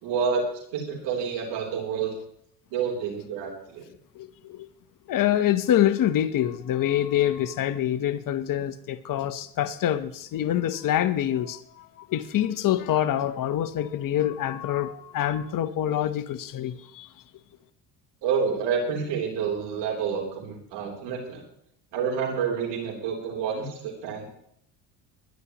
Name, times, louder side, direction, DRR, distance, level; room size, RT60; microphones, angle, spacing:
voice 1, 0.0-0.5 0.7-2.2 2.7-3.9 18.2-21.4 21.9-24.3, right 6 dB, 75° right, 3.4 m, -28 dB
voice 2, 4.1-4.7 5.1-17.1, left 11 dB, 50° left, 1.1 m, -26 dB
22.5 x 9.9 x 3.0 m
supercardioid pair, 100°, 43 cm